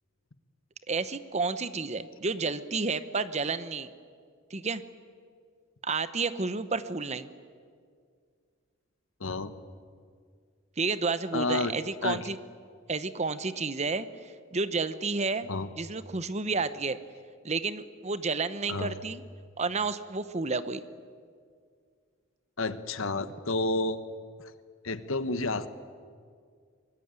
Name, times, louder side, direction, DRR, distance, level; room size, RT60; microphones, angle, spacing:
voice 1, 0.9-3.9 4.5-4.8 5.8-7.3 10.8-12.4 12.9-15.5 15.8-17.0 17.4-19.2 19.6-20.8, right 4 dB, 30° right, 13 dB, 0.9 m, -31 dB
voice 2, 9.2-9.5 11.3-11.7 12.0-12.2 15.5-15.7 18.7-18.9 22.6-24.0 24.8-25.7, left 2 dB, 70° left, 12 dB, 1.2 m, -30 dB
24.0 x 20.5 x 9.0 m, 2.1 s
head